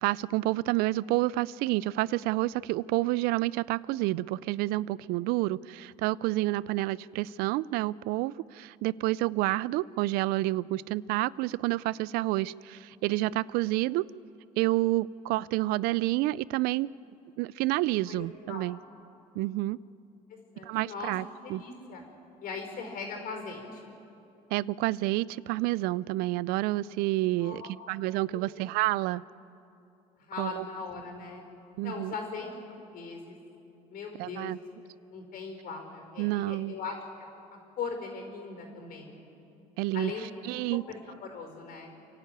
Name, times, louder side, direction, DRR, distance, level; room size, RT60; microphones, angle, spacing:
voice 1, 0.0-14.0 14.6-16.9 17.4-18.8 19.4-19.8 20.6-21.2 21.5-21.6 24.5-29.2 30.4-30.6 31.8-32.1 34.2-34.6 36.2-36.7 39.8-40.1 40.4-40.8, right 18 dB, 80° right, 22 dB, 0.4 m, -29 dB
voice 2, 18.0-18.7 20.5-21.1 21.4-22.0 22.4-23.9 27.4-27.9 28.3-28.6 29.1-29.2 30.2-31.4 31.8-33.4 33.9-37.0 37.8-39.2 39.9-40.2 40.7-41.9, left 4 dB, 65° left, 3 dB, 5.0 m, -40 dB
28.5 x 12.0 x 9.2 m, 2.8 s
supercardioid pair, 85°, 15 cm